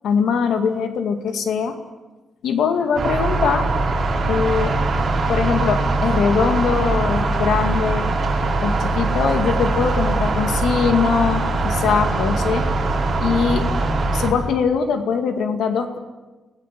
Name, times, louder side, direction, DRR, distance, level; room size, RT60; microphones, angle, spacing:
voice 1, 0.0-1.8 2.4-3.7 4.3-4.7 5.3-8.1 8.6-12.7 13.2-13.7 14.1-16.0, left 6 dB, 80° left, 7 dB, 2.2 m, -21 dB
sound 1, 2.9-14.3, right 2 dB, 40° right, 4.5 m, -21 dB
28.5 x 18.5 x 7.6 m, 1.2 s
cardioid pair, 135°, 0 cm